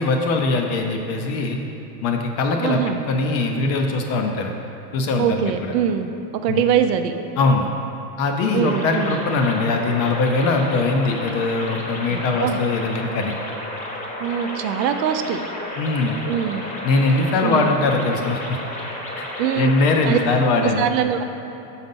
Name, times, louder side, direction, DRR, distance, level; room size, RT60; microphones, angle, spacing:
voice 1, 0.0-1.6 2.0-4.5 4.9-5.7 6.5-6.6 7.4-7.7 8.2-13.3 15.8-16.2 16.8-18.6 19.2-19.3 19.6-20.9, left 3 dB, 35° left, 3 dB, 0.4 m, -21 dB
voice 2, 2.6-3.0 5.2-6.1 6.4-7.1 8.5-9.2 12.1-12.6 14.2-15.4 16.3-16.6 17.4-17.8 19.4-19.7 20.0-20.2 20.6-21.2, right 9 dB, 85° right, 8 dB, 0.7 m, -22 dB
sound 1, 8.6-20.2, left 1 dB, 15° left, 0.8 m, -32 dB
6.1 x 3.9 x 5.3 m, 3.0 s
supercardioid pair, 140°, 48 cm